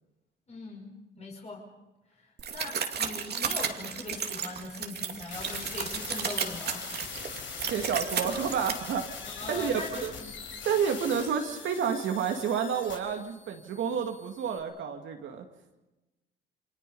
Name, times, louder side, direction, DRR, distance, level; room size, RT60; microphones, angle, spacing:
voice 1, 0.5-0.9 1.2-1.7 2.1-6.9 9.2-10.3, left 2 dB, 35° left, -2 dB, 5.4 m, -41 dB
sound 1, 2.4-8.7, right 7 dB, 55° right, 2.3 m, -33 dB
sound 2, 5.3-14.6, left 6 dB, 75° left, 4.6 m, -42 dB
voice 2, 7.6-10.1 10.6-15.5, right 7 dB, 75° right, 4 dB, 2.3 m, -30 dB
29.0 x 25.0 x 5.5 m, 1.1 s
cardioid pair, 90°, 20 cm